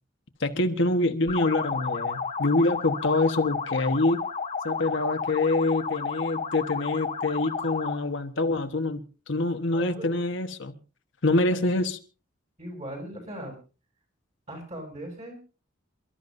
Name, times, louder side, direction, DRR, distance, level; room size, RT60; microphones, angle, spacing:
voice 1, 0.4-4.2 4.6-9.0 9.3-10.7 11.2-12.0, left 2 dB, 65° left, 1.3 m, -25 dB
sound 1, 1.3-8.1, left 5 dB, 35° left, 1.3 m, -31 dB
voice 2, 9.7-10.1 12.6-13.6 14.5-15.4, right 1 dB, 35° right, 7.5 m, -39 dB
28.5 x 13.0 x 2.6 m
head